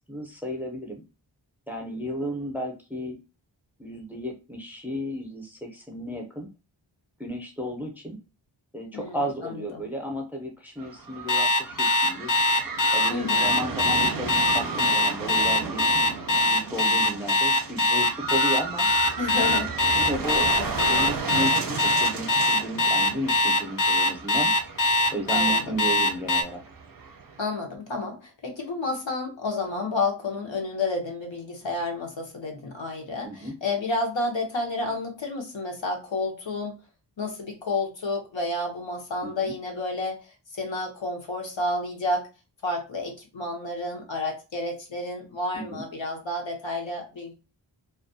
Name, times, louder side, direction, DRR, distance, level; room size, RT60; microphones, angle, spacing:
voice 1, 0.1-1.0 1.7-3.2 3.8-6.5 7.2-8.2 8.7-12.3 12.9-15.8 16.4-18.9 19.4-19.6 19.9-20.5 20.9-24.5 25.1-26.6 33.2-33.6 39.2-39.5 45.5-45.8, equal, 5° right, 2 dB, 0.6 m, -33 dB
voice 2, 8.9-9.9 13.1-13.5 19.2-20.1 20.6-21.1 25.3-25.8 27.4-36.7 37.2-40.2 40.5-42.2 42.6-47.3, left 2 dB, 80° left, 1 dB, 0.9 m, -30 dB
sound 1, 10.8-27.4, right 4 dB, 50° right, 0.5 m, -35 dB
Alarm, 11.3-26.4, left 2 dB, 45° left, 0.5 m, -22 dB
2.4 x 2.2 x 2.6 m, 0.30 s
wide cardioid pair, 60°, 45 cm